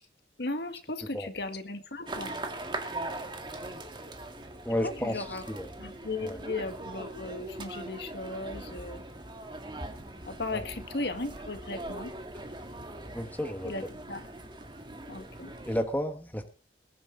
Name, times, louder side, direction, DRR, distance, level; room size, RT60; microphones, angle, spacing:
voice 1, 0.4-2.4 4.8-5.4 5.8-9.0 10.3-12.1 13.6-13.8 14.1-14.2 15.1-15.5, left 2 dB, 65° left, 8 dB, 1.7 m, -36 dB
voice 2, 1.0-1.3 4.6-5.7 6.2-6.4 10.5-10.6 13.1-13.7 15.6-16.5, left 1 dB, 10° left, 6 dB, 1.2 m, -32 dB
sound 1, 2.1-15.8, right 2 dB, 25° right, 1.9 m, -41 dB
21.0 x 10.0 x 3.8 m, 0.39 s
head